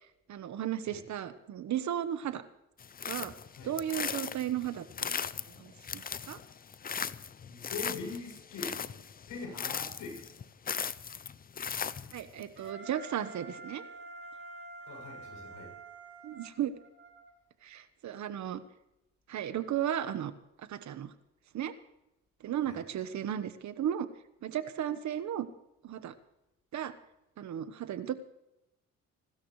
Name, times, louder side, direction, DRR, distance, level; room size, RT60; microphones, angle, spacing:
voice 1, 0.3-2.4 3.1-3.3 3.6-5.3 5.6-6.4 12.1-13.8 16.2-16.7 17.6-18.6 19.3-20.3 20.7-21.1 21.5-21.7 22.4-24.1 24.4-25.5 25.8-26.1 26.7-26.9 27.4-28.2, right 10 dB, 65° right, 12 dB, 1.2 m, -35 dB
sound 1, 2.8-12.4, left 7 dB, 30° left, 0.5 m, -38 dB
voice 2, 7.5-8.9 9.3-10.3 14.9-15.7 22.7-22.8, left 4 dB, 90° left, 1 dB, 7.1 m, -42 dB
Wind instrument woodwind instrument, 12.5-17.3, right 3 dB, 45° right, 5.2 m, -48 dB
27.0 x 13.0 x 3.2 m, 0.88 s
cardioid pair, 90°, 30 cm